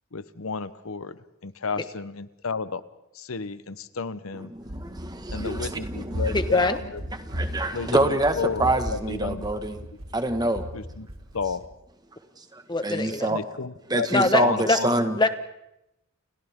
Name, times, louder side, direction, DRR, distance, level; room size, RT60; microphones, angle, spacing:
voice 1, 0.1-1.2 1.4-2.8 3.2-4.5 5.3-6.8 7.7-8.0 8.4-8.7 9.1-9.4 10.7-11.1 11.3-11.6 13.3-15.0, left 5 dB, 85° left, 14 dB, 0.9 m, -31 dB
voice 2, 4.3-6.5 7.2-9.8 10.1-10.6 12.5-13.4 13.9-15.2, right 1 dB, 20° right, 7 dB, 1.5 m, -26 dB
Run, 4.6-11.6, equal, 85° right, 3.0 m, -35 dB
voice 3, 6.3-6.8 12.7-13.4 14.1-14.8 15.2-15.3, left 2 dB, 20° left, 9 dB, 1.3 m, -23 dB
30.0 x 29.0 x 3.6 m, 0.86 s
head